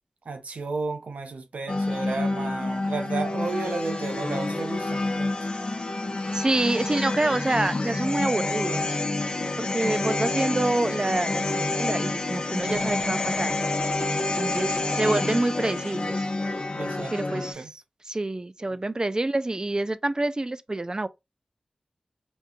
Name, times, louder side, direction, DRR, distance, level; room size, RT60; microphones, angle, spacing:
voice 1, 0.2-5.5 16.8-17.7, right 4 dB, 85° right, 0.6 m, -33 dB
sound 1, 1.7-17.5, left 2 dB, 50° left, 0.9 m, -28 dB
voice 2, 6.3-9.0 9.6-13.5 14.4-16.2 17.1-21.1, right 2 dB, 35° right, 0.4 m, -27 dB
5.2 x 2.6 x 2.4 m
cardioid pair, 45°, 2 cm